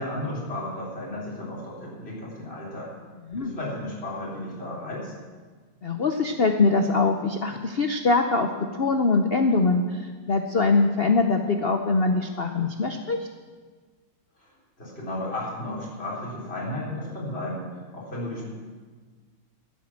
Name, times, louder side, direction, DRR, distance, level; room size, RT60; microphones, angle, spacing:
voice 1, 0.0-2.9 3.3-5.1 14.4-14.5 14.8-18.5, left 1 dB, 30° left, -6 dB, 4.2 m, -34 dB
voice 2, 5.8-13.3, left 3 dB, 85° left, 6 dB, 0.5 m, -23 dB
15.0 x 8.4 x 7.3 m, 1.5 s
omnidirectional pair, 2.2 m